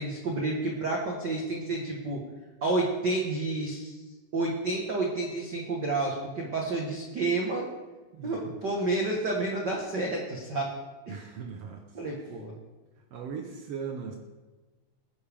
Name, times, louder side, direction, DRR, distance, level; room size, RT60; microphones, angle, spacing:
voice 1, 0.0-2.2 2.6-4.0 4.3-7.7 8.2-10.7 11.1-11.2 11.9-12.5, right 2 dB, 65° right, -1 dB, 1.0 m, -30 dB
voice 2, 8.1-8.6 11.1-11.8 13.1-14.2, right 6 dB, 90° right, 3 dB, 1.3 m, -38 dB
20.0 x 9.9 x 3.5 m, 1.2 s
omnidirectional pair, 4.2 m